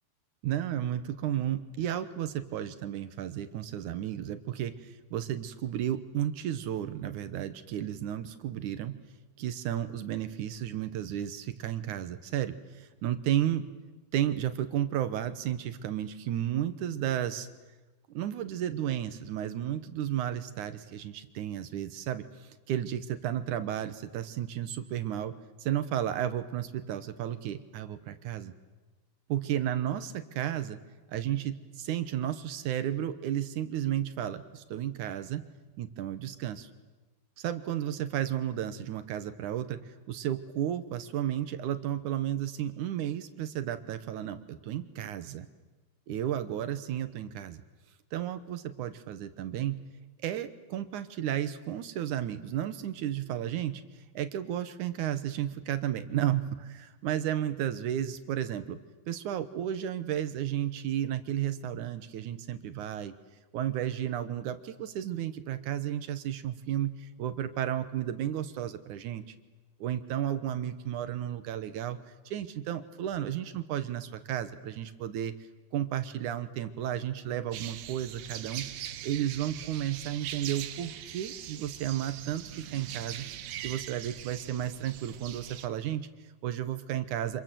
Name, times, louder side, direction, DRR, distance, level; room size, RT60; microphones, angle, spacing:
voice 1, 0.4-8.9 9.4-13.6 14.1-17.5 18.1-25.4 25.6-28.5 29.3-30.8 31.1-35.4 35.8-36.7 37.4-45.5 46.1-47.6 48.1-49.8 50.2-53.8 54.1-58.8 59.1-63.1 63.5-69.2 69.8-72.0 72.3-75.3 75.7-78.7 79.0-83.3 83.6-87.4, right 11 dB, 65° right, 10 dB, 2.2 m, -33 dB
sound 1, 77.5-85.7, right 11 dB, 85° right, 3.1 m, -42 dB
27.0 x 27.0 x 7.7 m, 1.2 s
omnidirectional pair, 4.5 m